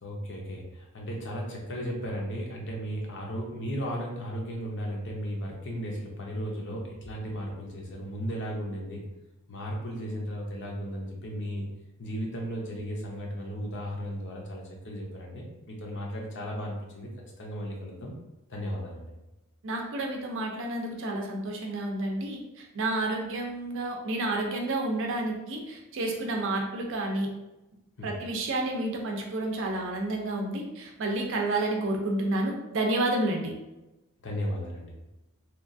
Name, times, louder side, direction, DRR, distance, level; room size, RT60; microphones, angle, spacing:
voice 1, 0.0-9.0 9.5-11.6 12.0-17.1 17.4-18.1 18.5-19.1 28.0-28.2 34.2-34.9, equal, 55° left, -1 dB, 0.6 m, -35 dB
voice 2, 19.6-27.3 28.0-33.5, right 2 dB, 60° right, 1 dB, 0.5 m, -30 dB
2.9 x 2.3 x 2.5 m, 0.99 s
head